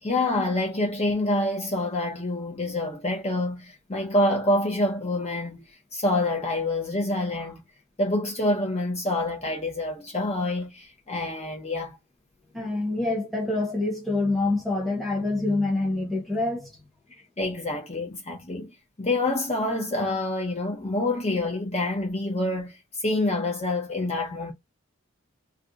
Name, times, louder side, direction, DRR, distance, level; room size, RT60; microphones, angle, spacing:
voice 1, 0.0-7.6 8.0-12.0 17.4-18.7 19.0-24.5, left 1 dB, 30° left, 0.7 m, -27 dB
voice 2, 12.5-16.7, left 2 dB, ahead, 0.9 m, -26 dB
2.5 x 2.3 x 3.8 m
head